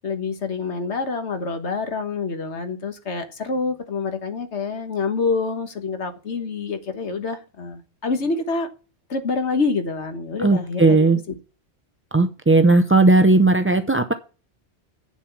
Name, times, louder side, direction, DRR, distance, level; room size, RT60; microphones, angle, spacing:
voice 1, 0.0-8.7 9.1-11.1, left 4 dB, 80° left, 8 dB, 1.7 m, -26 dB
voice 2, 10.4-11.2 12.1-14.1, right 3 dB, 20° right, 7 dB, 0.3 m, -16 dB
8.9 x 7.3 x 5.9 m, 0.34 s
omnidirectional pair, 1.1 m